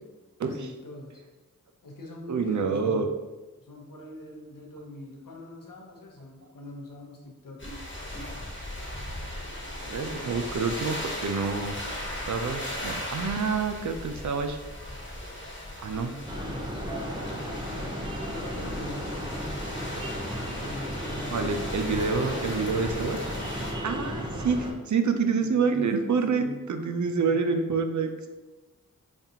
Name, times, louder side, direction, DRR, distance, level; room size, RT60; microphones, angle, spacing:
voice 1, 0.5-1.2 1.8-3.1 3.6-7.7 15.9-16.9 17.7-19.4 20.6-21.5 25.2-26.6 27.1-27.6, left 1 dB, 75° left, 0 dB, 0.8 m, -44 dB
voice 2, 2.3-3.1 9.8-11.8 12.2-14.6 15.8-16.1 21.3-23.3 23.8-24.6 24.9-28.3, right 5 dB, 60° right, 7 dB, 0.4 m, -27 dB
sound 1, 7.6-23.7, left 1 dB, 35° left, 1.2 m, -37 dB
sound 2, 16.3-24.7, equal, 15° right, 0.7 m, -34 dB
5.2 x 2.4 x 2.8 m, 1.2 s
wide cardioid pair, 50°, 33 cm